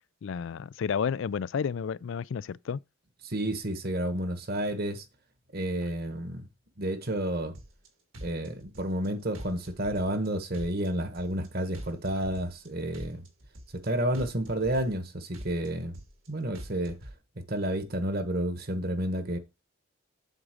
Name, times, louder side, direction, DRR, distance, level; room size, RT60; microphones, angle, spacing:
voice 1, 0.2-2.8, left 6 dB, 65° left, 0.3 m, -31 dB
voice 2, 3.2-5.0 5.5-6.5 6.8-7.5 8.2-13.2 13.7-16.0 16.3-17.0 17.4-19.4, right 1 dB, 45° right, 1.2 m, -30 dB
sound 1, 7.5-7.9 8.1-9.1 9.3-10.3 10.5-11.5 11.7-12.7 12.9-13.9 14.1-15.1 15.3-16.3 16.5-17.1, equal, 70° right, 2.0 m, -44 dB
8.0 x 3.7 x 6.4 m
head